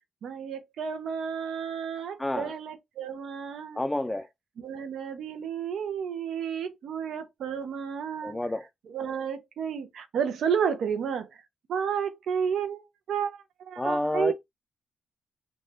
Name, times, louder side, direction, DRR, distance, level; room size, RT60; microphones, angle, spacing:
voice 1, 0.2-3.8 4.6-8.4 8.8-11.3 11.7-14.3, right 7 dB, 80° right, 0.5 m, -31 dB
voice 2, 2.2-2.5 3.8-4.2 8.2-8.6 13.8-14.3, left 1 dB, 15° left, 0.3 m, -28 dB
2.6 x 2.2 x 3.2 m
cardioid pair, 90°, 0 cm